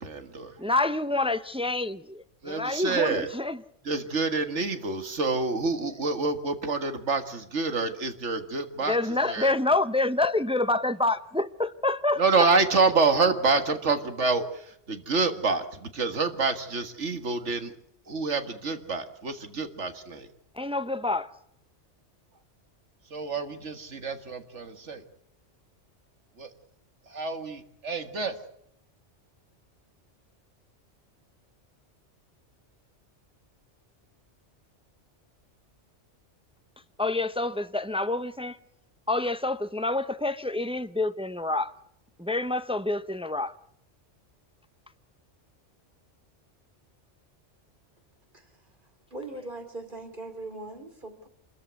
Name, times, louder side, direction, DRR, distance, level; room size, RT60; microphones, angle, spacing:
voice 1, 0.0-0.6 2.4-3.3 3.8-9.0 9.2-9.5 12.2-17.7 18.1-20.3 23.1-25.0 26.4-26.5 27.1-28.4, right 4 dB, 75° right, 2.1 m, -27 dB
voice 2, 0.6-3.6 8.9-12.2 20.6-21.3 37.0-38.6 39.1-41.7 42.2-43.5, left 2 dB, 5° right, 0.5 m, -27 dB
voice 3, 48.3-48.8 49.1-51.3, right 2 dB, 45° right, 3.0 m, -40 dB
26.5 x 14.0 x 8.2 m
omnidirectional pair, 1.2 m